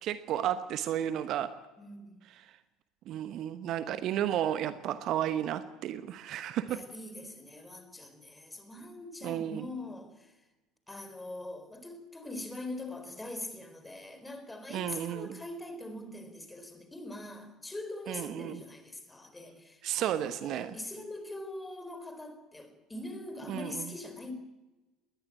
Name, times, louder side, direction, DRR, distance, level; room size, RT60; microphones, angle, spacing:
voice 1, 0.0-1.5 2.3-2.4 3.1-6.8 9.2-9.6 14.7-15.4 18.1-18.6 19.8-20.8 23.5-23.8, right 11 dB, 45° right, 1.0 m, -33 dB
voice 2, 1.8-2.2 6.7-10.3 10.9-24.3, left 1 dB, 10° left, 4.4 m, -43 dB
20.5 x 19.5 x 8.7 m
figure-of-eight pair, 65°, 0 cm